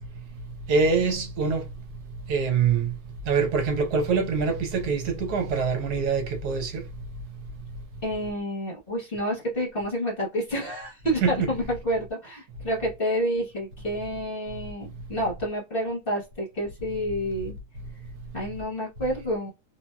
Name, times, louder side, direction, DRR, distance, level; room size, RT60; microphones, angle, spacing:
voice 1, 0.7-1.6 2.3-3.0 3.3-6.9 11.2-11.6, right 5 dB, 75° right, 1.3 m, -24 dB
voice 2, 8.0-17.6 18.3-19.5, equal, 40° left, 1.0 m, -29 dB
2.8 x 2.7 x 2.3 m
omnidirectional pair, 1.8 m